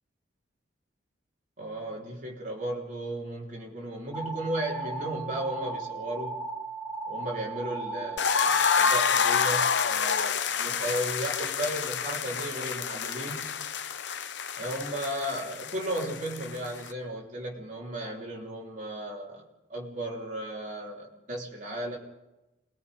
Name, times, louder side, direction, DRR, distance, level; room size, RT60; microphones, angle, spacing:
voice 1, 1.6-6.4 7.1-13.5 14.6-22.0, right 1 dB, 40° right, -2 dB, 3.3 m, -35 dB
sound 1, 4.1-8.9, right 3 dB, 10° right, 1.4 m, -36 dB
sound 2, 8.2-16.9, left 6 dB, 70° left, 0.8 m, -28 dB
27.5 x 20.5 x 5.1 m, 1.0 s
head